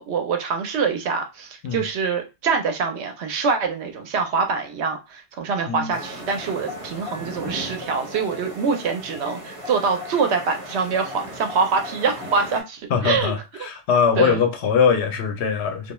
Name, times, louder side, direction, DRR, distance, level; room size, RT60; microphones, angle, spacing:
voice 1, 0.0-13.3 13.6-13.7 14.2-14.4, right 5 dB, 85° right, 0.9 m, -25 dB
sound 1, 5.9-12.6, equal, 30° right, 1.2 m, -36 dB
voice 2, 12.9-15.9, left 6 dB, 80° left, 0.9 m, -21 dB
2.4 x 2.2 x 3.0 m
omnidirectional pair, 1.1 m